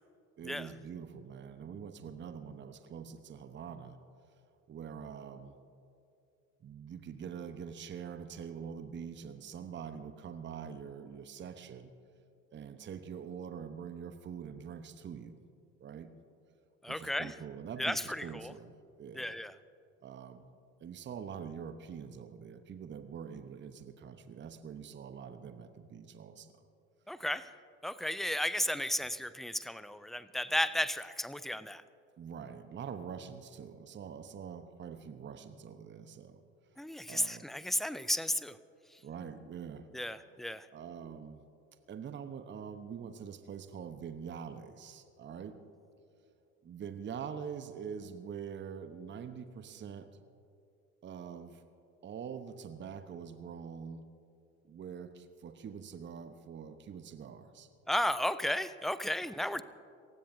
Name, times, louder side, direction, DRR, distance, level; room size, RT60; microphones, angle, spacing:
voice 1, 0.4-4.0 4.7-5.5 6.6-11.9 12.5-15.4 15.8-16.1 16.9-18.7 19.0-19.4 20.0-20.5 20.8-26.7 32.2-36.4 36.7-36.8 37.1-37.5 39.0-39.9 40.7-41.4 41.9-45.6 46.6-50.1 51.0-51.6 52.0-54.1 54.6-57.7, right 7 dB, 30° right, 10 dB, 0.9 m, -44 dB
voice 2, 16.8-17.3 17.8-18.5 19.1-19.5 27.1-27.5 27.8-31.8 36.8-38.6 38.9-39.0 39.9-40.7 57.9-59.6, left 1 dB, ahead, 15 dB, 0.4 m, -34 dB
28.0 x 15.5 x 2.7 m, 2.5 s
figure-of-eight pair, 60°, 39 cm